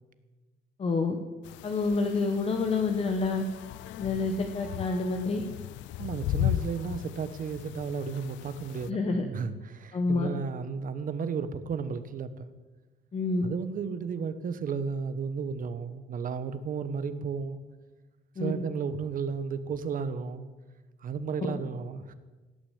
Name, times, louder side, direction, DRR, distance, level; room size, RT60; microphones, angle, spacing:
voice 1, 0.8-1.2 1.6-3.4 4.0-5.4 8.9-9.2 9.9-10.3 13.1-13.4 18.4-18.5, left 3 dB, 30° left, 5 dB, 1.2 m, -28 dB
sound 1, 1.4-8.9, left 14 dB, 90° left, 0.4 m, -36 dB
voice 2, 6.0-12.5 13.4-17.6 18.4-20.5 21.0-22.1, right 5 dB, 50° right, 12 dB, 1.1 m, -33 dB
17.5 x 6.8 x 8.5 m, 1.3 s
cardioid pair, 125°, 19 cm